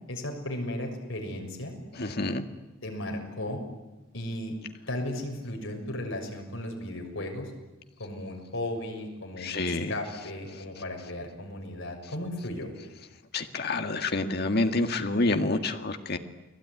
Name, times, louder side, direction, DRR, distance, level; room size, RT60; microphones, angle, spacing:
voice 1, 0.1-1.8 2.8-3.6 4.1-4.5 4.9-7.5 8.0-12.7, left 1 dB, 65° left, 2 dB, 6.5 m, -35 dB
voice 2, 2.0-2.4 9.4-9.9 13.3-16.2, left 2 dB, 50° left, 6 dB, 1.9 m, -28 dB
30.0 x 20.0 x 9.8 m, 1.1 s
head